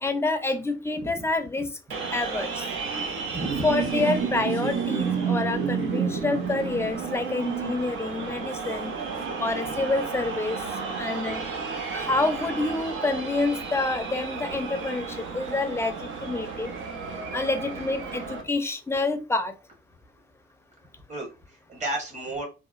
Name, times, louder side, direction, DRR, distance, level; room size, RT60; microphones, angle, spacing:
voice 1, 0.0-1.6 2.1-2.6 3.6-8.9 9.4-10.6 11.0-11.4 11.9-15.1 15.3-16.0 16.2-16.7 17.3-19.5, left 3 dB, 10° left, 8 dB, 0.4 m, -27 dB
sound 1, 1.9-18.4, right 5 dB, 85° right, 0.6 m, -31 dB
voice 2, 3.3-3.9 9.6-9.7 21.1-22.4, right 1 dB, 35° right, -1 dB, 1.1 m, -34 dB
2.8 x 2.1 x 2.4 m, 0.30 s
cardioid pair, 90°, 20 cm